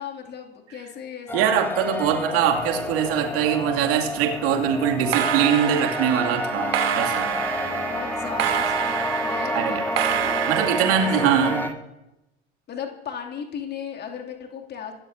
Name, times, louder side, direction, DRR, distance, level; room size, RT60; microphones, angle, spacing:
voice 1, 0.0-1.6 2.1-2.5 7.5-10.4 11.0-11.5 12.7-14.9, left 7 dB, 30° left, 2 dB, 2.6 m, -37 dB
sound 1, 1.3-11.7, left 2 dB, 5° left, 1.3 m, -29 dB
voice 2, 1.3-7.3 9.5-9.8 10.5-11.6, right 9 dB, 45° right, 3 dB, 2.5 m, -22 dB
sound 2, 2.5-3.4 3.6-4.0 4.9-11.7, right 11 dB, 65° right, 1.3 m, -28 dB
26.0 x 13.0 x 2.7 m, 0.93 s
figure-of-eight pair, 80°, 33 cm